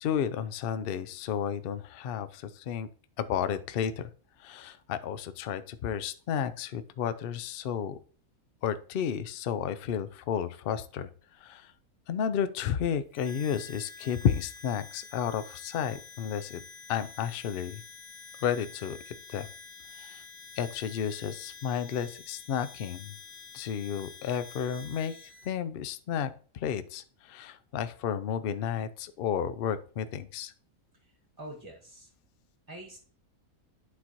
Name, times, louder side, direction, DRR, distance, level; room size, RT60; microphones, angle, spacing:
voice 1, 0.0-2.9 3.2-4.1 4.4-8.0 8.6-11.1 11.4-11.7 12.1-16.6 16.9-17.8 18.4-19.5 20.0-20.2 20.6-23.2 23.5-25.2 25.4-30.5, left 8 dB, 60° left, 12 dB, 0.6 m, -32 dB
Harmonica, 13.1-25.5, left 5 dB, 25° left, 0.8 m, -48 dB
voice 2, 30.9-32.1 32.7-33.0, right 1 dB, 15° right, -1 dB, 1.3 m, -46 dB
11.5 x 4.0 x 2.9 m, 0.42 s
omnidirectional pair, 1.5 m